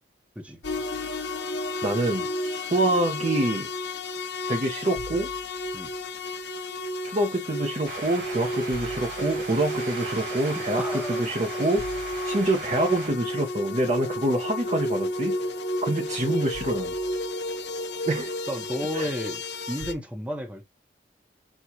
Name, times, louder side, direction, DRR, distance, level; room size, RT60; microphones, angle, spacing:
sound 1, 0.6-19.9, left 1 dB, 70° left, 0.8 m, -32 dB
voice 1, 1.8-3.7 4.5-5.3 6.3-6.4 7.0-12.0 12.2-15.5 15.8-16.9 18.1-18.4 18.9-19.1, right 1 dB, 40° right, 0.7 m, -26 dB
sound 2, 7.8-13.1, right 4 dB, 85° right, 3.1 m, -38 dB
voice 2, 10.6-11.2 18.5-19.4 19.7-20.6, equal, 5° right, 0.8 m, -33 dB
6.3 x 2.3 x 2.7 m
head